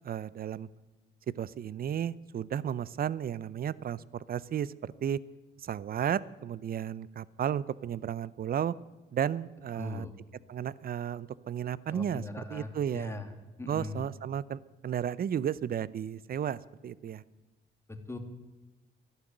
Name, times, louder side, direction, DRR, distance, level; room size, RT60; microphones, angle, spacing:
voice 1, 0.0-0.7 1.4-5.2 5.6-8.7 9.1-10.1 10.5-13.2 13.7-17.2, right 9 dB, 50° right, 20 dB, 0.6 m, -33 dB
voice 2, 9.8-10.1 11.9-13.3 13.6-14.0 17.9-18.2, left 3 dB, 15° left, 6 dB, 2.4 m, -40 dB
13.5 x 11.5 x 9.0 m, 1.2 s
cardioid pair, 90°, 20 cm